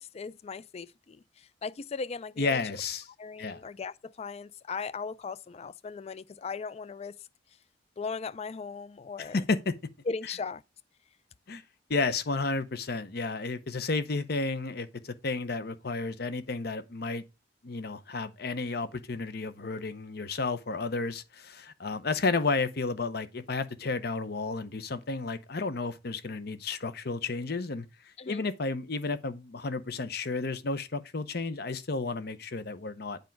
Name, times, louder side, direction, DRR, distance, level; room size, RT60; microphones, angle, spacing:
voice 1, 0.0-2.6 3.2-7.2 8.0-9.4 10.1-10.6 28.2-28.4, left 4 dB, 35° left, 0.3 m, -38 dB
voice 2, 2.4-3.0 3.4-3.6 9.2-9.7 11.5-11.6 11.9-17.2 17.6-27.9 28.3-33.2, left 3 dB, 60° left, 0.8 m, -32 dB
8.2 x 5.2 x 4.5 m
head